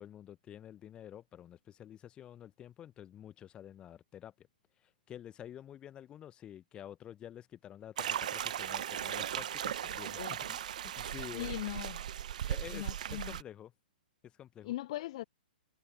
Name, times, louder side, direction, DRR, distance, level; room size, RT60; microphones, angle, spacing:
voice 1, 0.0-4.5 4.8-10.6 11.0-11.5 12.5-12.8 13.1-13.7 14.2-14.7, left 10 dB, 20° left, 0.9 m, -49 dB
sound 1, 8.0-13.4, right 10 dB, 50° right, 1.0 m, -37 dB
voice 2, 11.3-12.0 12.7-13.4 14.6-15.2, left 15 dB, 40° left, 0.6 m, -40 dB
figure-of-eight pair, 115°, 5 cm